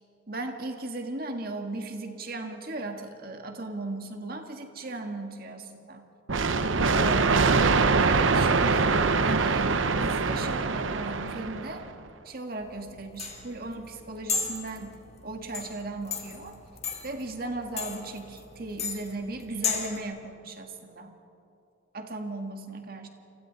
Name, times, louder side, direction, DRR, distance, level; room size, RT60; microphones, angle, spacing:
voice 1, 0.3-6.1 6.9-7.6 8.0-8.8 9.2-11.8 12.2-16.6 17.0-21.2 21.9-23.1, right 2 dB, 50° right, 4 dB, 1.8 m, -37 dB
sound 1, 6.3-11.9, right 4 dB, 75° right, 0.9 m, -23 dB
sound 2, 12.6-20.0, left 5 dB, 35° left, 1.9 m, -35 dB
30.0 x 24.0 x 4.1 m, 2.8 s
head